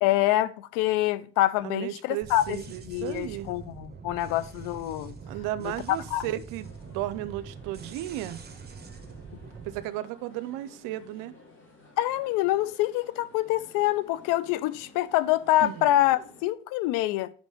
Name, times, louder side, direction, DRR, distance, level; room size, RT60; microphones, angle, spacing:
voice 1, 0.0-2.6 2.9-5.1 5.6-5.7 6.1-6.3 12.0-17.3, left 15 dB, 80° left, 0.5 m, -26 dB
voice 2, 1.6-3.5 5.3-8.4 9.5-11.3 15.6-15.9, right 14 dB, 80° right, 0.6 m, -34 dB
sound 1, 2.2-9.8, right 5 dB, 30° right, 1.2 m, -44 dB
sound 2, 6.6-16.5, left 2 dB, 40° left, 2.9 m, -54 dB
5.5 x 5.2 x 4.9 m
hypercardioid pair, 60°, 31 cm